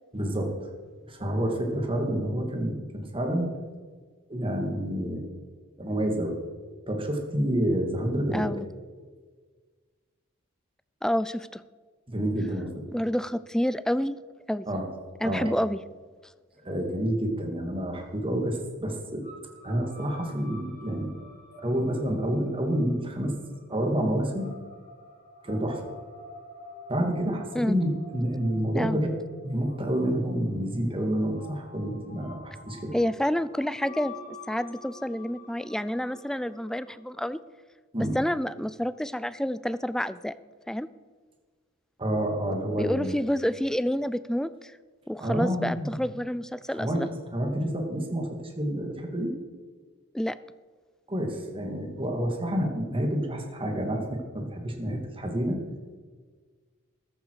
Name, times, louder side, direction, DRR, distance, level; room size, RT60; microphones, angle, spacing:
voice 1, 0.1-0.5 1.1-3.5 4.3-5.2 5.8-6.4 6.9-8.5 12.1-12.8 14.7-14.9 15.2-15.5 16.6-19.2 19.6-21.1 21.6-23.3 23.7-24.5 25.4-25.8 26.9-29.1 29.4-33.0 37.9-38.2 42.0-43.1 45.2-45.9 46.7-49.3 51.1-55.6, equal, 25° right, 2 dB, 2.4 m, -28 dB
voice 2, 8.3-8.7 11.0-11.6 12.9-14.2 14.5-14.7 15.2-15.8 27.5-27.8 28.7-29.0 32.9-37.4 38.0-40.3 40.7-40.9 42.8-44.7 45.1-47.1 50.1-50.4, equal, 5° left, 16 dB, 0.4 m, -28 dB
sound 1, 19.2-37.4, left 2 dB, 40° left, 4.1 m, -49 dB
14.5 x 12.5 x 4.9 m, 1.5 s
head